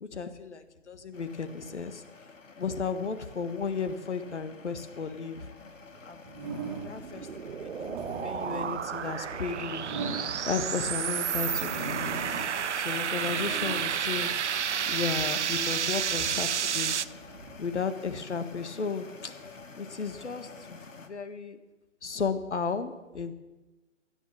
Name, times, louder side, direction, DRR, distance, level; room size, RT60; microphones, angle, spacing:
voice 1, 0.0-2.0 2.6-5.4 6.0-6.2 6.8-9.9 10.5-12.2 12.7-14.3 14.9-17.1 17.6-19.3 19.8-21.6 22.0-23.3, left 5 dB, 65° left, 10 dB, 1.5 m, -34 dB
sound 1, 1.1-21.1, left 3 dB, 90° left, 1.7 m, -49 dB
sound 2, 6.3-7.1 7.6-10.8 11.3-12.7 13.0-14.9 15.5-17.6, right 3 dB, 20° right, 2.0 m, -40 dB
sound 3, 6.5-17.1, right 8 dB, 65° right, 0.6 m, -31 dB
14.0 x 9.7 x 7.4 m, 1.1 s
hypercardioid pair, 165°, 37 cm